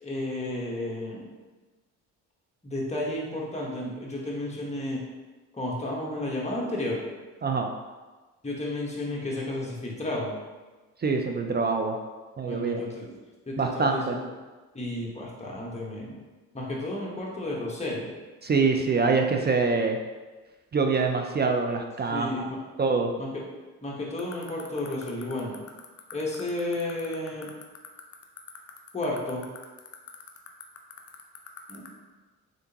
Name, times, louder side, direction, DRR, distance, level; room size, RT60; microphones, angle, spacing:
voice 1, 0.0-1.2 2.6-5.0 5.5-7.0 8.4-10.3 12.4-13.1 13.5-14.2 14.7-16.2 16.5-18.1 22.1-22.6 23.2-23.4 23.8-25.6 26.1-27.5 28.9-29.4 31.7-31.8, left 1 dB, 15° left, -3 dB, 1.2 m, -32 dB
voice 2, 7.4-7.7 11.0-12.0 12.4-12.8 13.6-14.2 18.4-20.0 20.7-22.5 22.8-23.1, right 4 dB, 25° right, 3 dB, 0.4 m, -25 dB
sound 1, 24.2-31.9, left 9 dB, 40° left, 0.6 m, -42 dB
3.8 x 3.4 x 2.8 m, 1.3 s
supercardioid pair, 60°, 39 cm